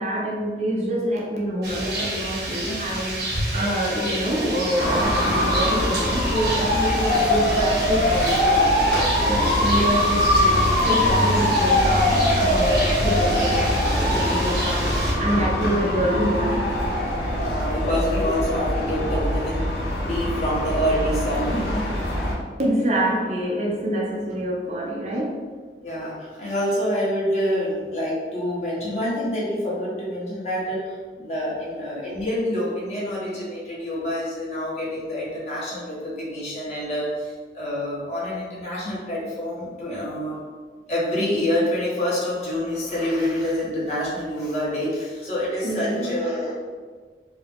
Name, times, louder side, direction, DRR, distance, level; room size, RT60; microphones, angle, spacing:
voice 1, 0.0-8.7 9.2-14.9 15.2-16.7 22.6-25.3 45.6-46.2, equal, 40° right, -2 dB, 0.6 m, -26 dB
Rain, 1.6-15.1, right 1 dB, 65° right, 1.1 m, -30 dB
voice 2, 3.6-4.2 17.3-19.7 20.0-21.8 25.8-30.8 31.2-40.4 40.9-46.5, equal, 40° left, -7 dB, 1.3 m, -27 dB
sound 1, 4.8-22.3, left 1 dB, 70° left, 1.0 m, -22 dB
4.6 x 2.3 x 3.5 m, 1.5 s
head